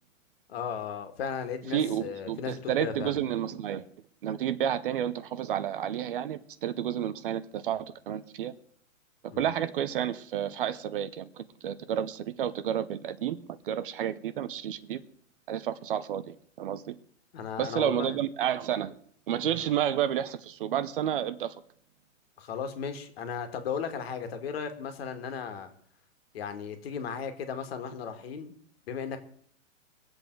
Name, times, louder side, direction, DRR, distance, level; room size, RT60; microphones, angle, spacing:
voice 1, 0.5-3.2 9.3-9.5 17.3-18.2 19.6-19.7 22.4-25.7 26.3-28.6 28.9-29.2, left 7 dB, 50° left, 8 dB, 2.0 m, -36 dB
voice 2, 1.7-3.8 4.2-8.5 9.4-13.4 13.6-15.0 15.5-16.9 17.6-18.9 19.3-21.5, right 10 dB, 45° right, 13 dB, 0.7 m, -30 dB
22.5 x 8.0 x 4.7 m, 0.62 s
hypercardioid pair, 155°, 39 cm